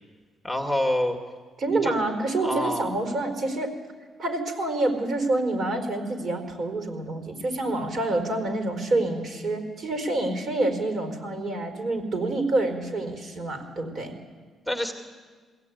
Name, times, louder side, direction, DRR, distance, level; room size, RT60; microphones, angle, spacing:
voice 1, 0.4-1.2 1.7-1.9 2.4-2.9 14.7-14.9, left 1 dB, ahead, 3 dB, 2.2 m, -26 dB
voice 2, 1.6-3.7 4.2-14.1, right 2 dB, 55° right, 5 dB, 4.5 m, -27 dB
22.0 x 16.5 x 9.4 m, 1.5 s
cardioid pair, 90°, 0 cm